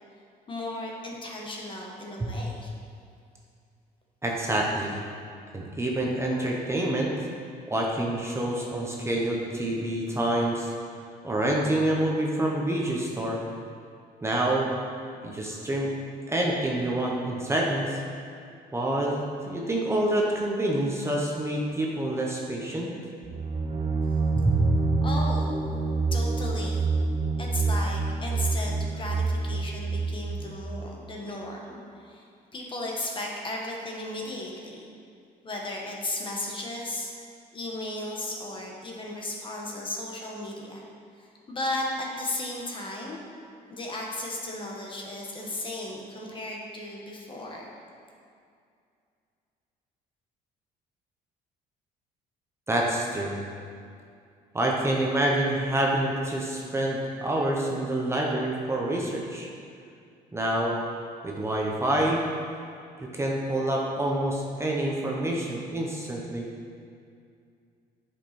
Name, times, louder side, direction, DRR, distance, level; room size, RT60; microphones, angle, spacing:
voice 1, 0.5-2.7 25.0-25.7 26.1-26.9 27.4-32.2 32.5-34.9 35.4-37.1 37.5-40.8 41.2-43.2 43.7-47.6, left 1 dB, 30° left, -1 dB, 1.5 m, -35 dB
voice 2, 4.2-5.0 5.5-7.1 7.7-10.7 11.2-13.4 14.2-14.7 15.2-15.9 16.3-18.0 18.7-22.9 24.4-24.6 52.7-53.4 54.5-59.5 60.3-60.8 61.2-62.2 63.0-66.4, right 1 dB, 15° right, -2 dB, 1.1 m, -27 dB
sound 1, 23.2-31.0, right 3 dB, 30° right, 0.7 m, -27 dB
9.7 x 5.6 x 4.4 m, 2.4 s
cardioid pair, 110°, 17 cm